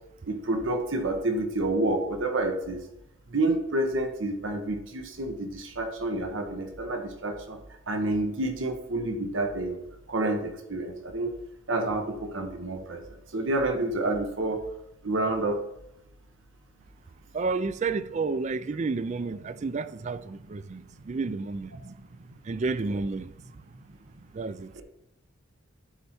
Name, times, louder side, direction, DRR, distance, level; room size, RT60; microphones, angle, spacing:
voice 1, 0.3-2.8 3.3-7.6 7.9-9.8 10.1-11.3 11.7-13.0 13.3-14.6 15.0-15.6 20.7-20.8 21.8-21.9 24.7-24.8, right 2 dB, 80° right, 1.1 m, -29 dB
voice 2, 17.3-20.8 21.1-21.7 22.5-23.3 24.3-24.8, right 4 dB, 35° right, 0.4 m, -30 dB
12.5 x 4.5 x 4.3 m
head